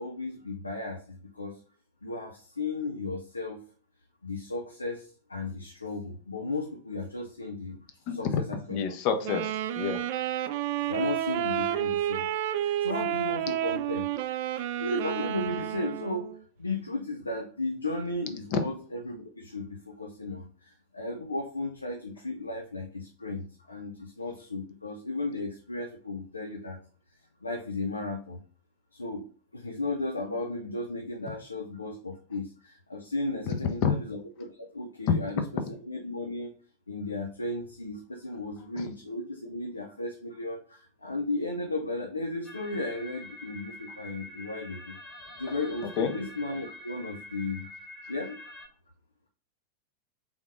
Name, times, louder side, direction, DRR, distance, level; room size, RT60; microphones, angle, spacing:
voice 1, 0.0-1.6 2.0-3.6 4.2-7.8 8.1-8.9 10.9-12.3 12.6-14.1 14.8-26.8 27.4-28.4 28.9-36.5 36.9-45.0 45.4-47.7 48.0-48.4, left 2 dB, 80° left, 2 dB, 0.6 m, -35 dB
voice 2, 8.7-10.0 18.5-18.7 33.8-33.9 46.0-46.1, left 6 dB, 45° left, 7 dB, 0.7 m, -28 dB
Wind instrument woodwind instrument, 9.2-16.4, right 11 dB, 50° right, 0.3 m, -30 dB
sound 1, 42.4-48.7, left 2 dB, 5° right, 0.9 m, -46 dB
3.8 x 3.5 x 3.1 m, 0.43 s
figure-of-eight pair, 90°, 0 cm